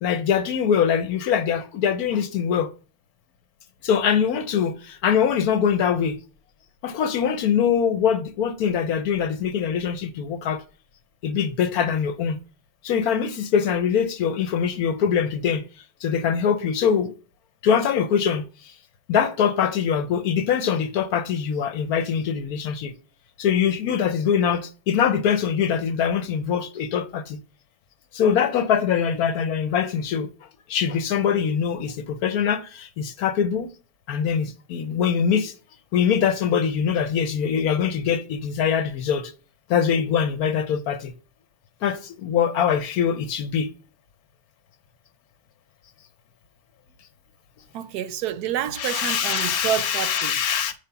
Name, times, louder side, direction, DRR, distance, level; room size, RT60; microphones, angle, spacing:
voice 1, 0.0-2.7 3.8-6.2 6.8-10.6 11.2-12.4 12.8-15.6 16.0-17.1 17.6-18.4 19.1-22.9 23.4-27.4 28.1-30.3 30.7-33.7 34.1-35.5 35.9-39.3 39.7-41.1 41.8-43.7 48.8-50.7, left 7 dB, 70° left, 1.1 m, -23 dB
voice 2, 47.7-50.4, right 11 dB, 75° right, 1.1 m, -28 dB
5.0 x 4.9 x 5.7 m
omnidirectional pair, 1.8 m